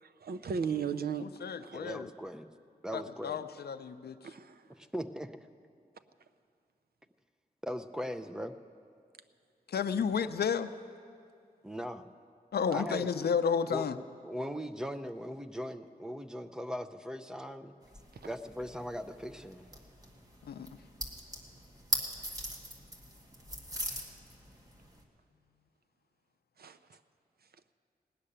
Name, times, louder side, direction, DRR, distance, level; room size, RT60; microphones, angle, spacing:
voice 1, 0.0-1.8 4.2-4.6 26.6-27.0, right 6 dB, 75° right, 11 dB, 0.6 m, -36 dB
voice 2, 1.2-2.1 2.9-4.2 9.7-10.7 12.5-13.9 20.5-20.7, left 6 dB, 90° left, 9 dB, 0.5 m, -32 dB
voice 3, 1.7-2.5 2.8-3.5 4.8-5.3 7.6-8.6 11.6-12.1 12.7-13.2 13.7-17.7 18.2-19.7, equal, 5° right, 8 dB, 0.5 m, -39 dB
sound 1, 17.8-25.0, equal, 20° right, 1.5 m, -41 dB
17.5 x 6.7 x 9.9 m, 2.4 s
wide cardioid pair, 130°, 16 cm